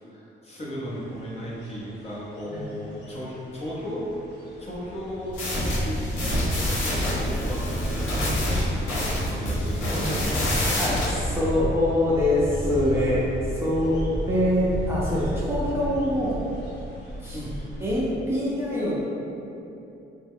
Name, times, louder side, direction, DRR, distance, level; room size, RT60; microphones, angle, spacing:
voice 1, 0.1-4.0 4.6-10.6 17.3-17.6, equal, 35° left, -7 dB, 0.9 m, -36 dB
sound 1, 0.8-18.1, equal, 60° left, 0.9 m, -32 dB
sound 2, 5.3-11.1, left 1 dB, 90° left, 0.9 m, -28 dB
voice 2, 10.8-16.3 17.2-17.4 17.8-18.9, left 1 dB, 10° right, -8 dB, 0.6 m, -24 dB
3.0 x 2.2 x 3.6 m, 2.8 s
cardioid pair, 90°, 20 cm